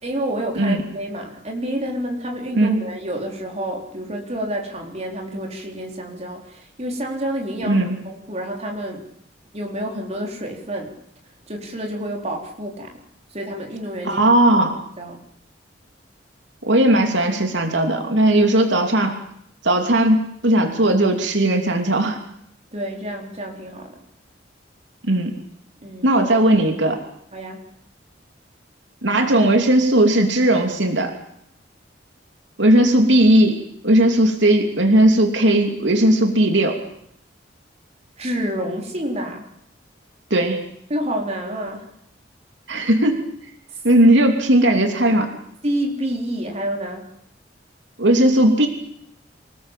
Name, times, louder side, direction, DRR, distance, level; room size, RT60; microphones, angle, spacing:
voice 1, 0.0-9.0 9.5-10.9 11.5-12.9 13.3-14.2 15.0-15.2 22.7-24.0 25.8-26.1 27.3-27.7 38.2-39.4 40.9-41.9 45.3-47.1, right 1 dB, 35° right, 1 dB, 4.1 m, -28 dB
voice 2, 7.7-8.0 14.0-14.8 16.7-19.2 19.6-22.2 25.0-25.4 26.0-27.0 29.0-31.1 32.6-33.6 33.8-36.8 40.3-40.6 42.7-43.3 43.8-45.3 48.0-48.7, right 1 dB, 80° right, 4 dB, 3.0 m, -17 dB
27.0 x 18.5 x 7.5 m, 0.72 s
head